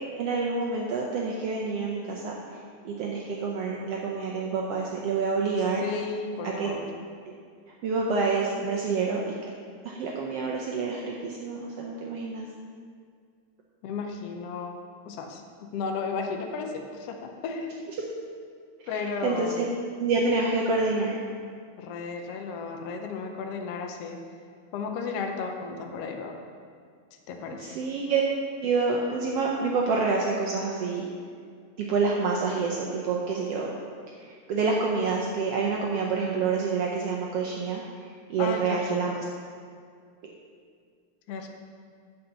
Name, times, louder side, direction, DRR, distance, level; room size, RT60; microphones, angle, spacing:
voice 1, 0.2-2.4 2.8-5.8 6.4-6.7 7.3-7.4 7.8-9.3 9.8-12.5 19.2-19.7 20.0-21.2 27.6-28.2 28.6-31.0 31.8-33.7 34.2-37.8 38.3-39.2, right 4 dB, 70° right, -2 dB, 1.5 m, -27 dB
voice 2, 5.8-6.9 13.8-14.8 15.1-17.9 18.9-19.6 21.8-24.2 24.7-26.4 27.3-27.7 38.4-39.2 41.3-41.5, left 4 dB, 70° left, 3 dB, 1.5 m, -34 dB
9.1 x 5.6 x 6.9 m, 2.1 s
omnidirectional pair, 3.4 m